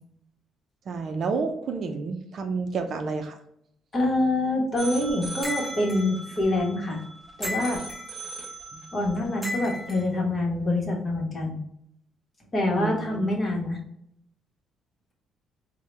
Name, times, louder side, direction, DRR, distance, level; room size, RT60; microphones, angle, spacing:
voice 1, 0.9-3.4 8.7-8.8 12.8-13.3, right 4 dB, 55° right, 5 dB, 0.5 m, -30 dB
voice 2, 3.9-7.0 7.4-7.8 8.9-11.6 12.5-13.8, left 2 dB, 30° left, 0 dB, 1.1 m, -26 dB
sound 1, 4.8-10.0, right 2 dB, 20° right, 1.3 m, -40 dB
sound 2, 5.4-6.0 7.4-8.1 9.4-10.0, left 1 dB, 5° left, 1.1 m, -34 dB
4.5 x 2.1 x 3.2 m, 0.74 s
cardioid pair, 125°, 0 cm